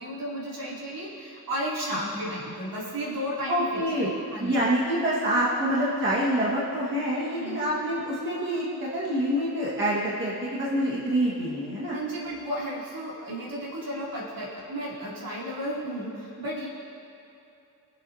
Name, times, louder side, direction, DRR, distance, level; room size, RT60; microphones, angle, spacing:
voice 1, 0.0-4.5 7.4-7.6 11.9-16.7, equal, 60° right, -6 dB, 3.0 m, -33 dB
voice 2, 3.5-4.1 4.4-12.0, equal, 30° right, -7 dB, 1.7 m, -26 dB
22.0 x 8.0 x 2.8 m, 2.8 s
wide cardioid pair, 170°, 38 cm